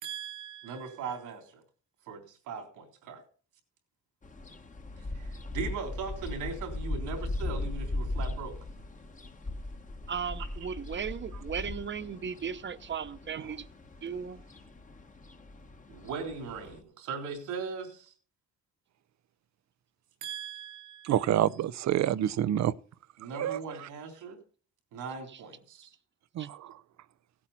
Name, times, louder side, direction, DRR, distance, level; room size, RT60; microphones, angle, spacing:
voice 1, 0.0-1.6 2.1-3.2 5.2-8.5 15.9-18.1 20.2-21.4 23.2-24.4 24.9-25.9, right 5 dB, 90° right, 3.6 m, -39 dB
sound 1, 4.2-16.8, left 2 dB, 25° left, 1.2 m, -39 dB
voice 2, 10.1-13.7 14.0-14.4 25.3-25.4 26.4-26.5, right 7 dB, 40° right, 0.9 m, -36 dB
voice 3, 21.1-22.7 23.4-23.6 26.4-26.6, right 11 dB, 65° right, 0.6 m, -27 dB
17.0 x 8.7 x 4.2 m
cardioid pair, 90°, 30 cm